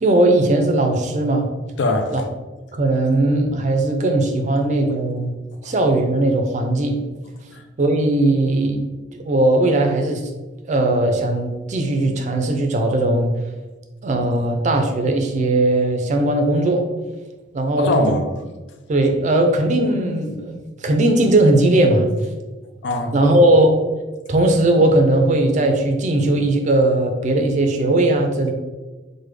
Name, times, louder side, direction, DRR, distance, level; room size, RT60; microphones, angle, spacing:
voice 1, 0.0-1.5 2.1-2.2 2.7-5.3 5.6-7.0 7.8-8.9 9.1-10.3 10.7-13.3 14.0-16.8 17.5-18.1 18.9-20.5 20.8-22.1 23.1-23.7 24.3-28.5, right 1 dB, 40° right, 4 dB, 0.4 m, -18 dB
voice 2, 1.8-2.3 5.6-5.7 7.5-7.6 17.8-18.3 22.4-23.3, left 2 dB, 75° left, 6 dB, 0.4 m, -23 dB
3.3 x 2.1 x 3.2 m, 1.2 s
head